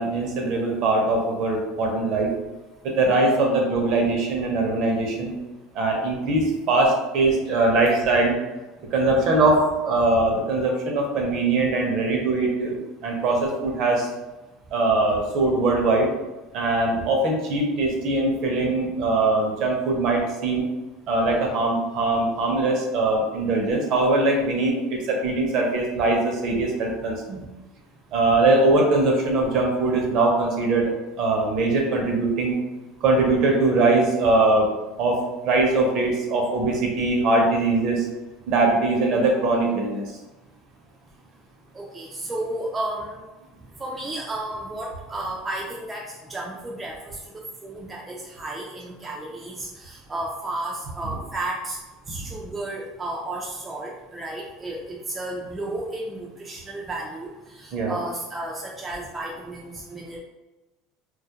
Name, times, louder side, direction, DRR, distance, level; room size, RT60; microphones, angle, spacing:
voice 1, 0.0-2.3 2.8-5.3 5.7-8.3 8.9-12.8 13.0-14.1 14.7-16.1 16.5-20.6 21.1-27.4 28.1-32.6 33.0-34.7 35.0-35.2 35.4-38.1 38.5-40.0 57.7-57.9, right 2 dB, 50° right, 0 dB, 0.6 m, -21 dB
voice 2, 41.7-43.2 43.8-47.2 47.6-51.8 52.1-60.2, right 1 dB, 15° right, -3 dB, 0.3 m, -33 dB
2.3 x 2.1 x 2.8 m, 1.1 s
cardioid pair, 145°, 0 cm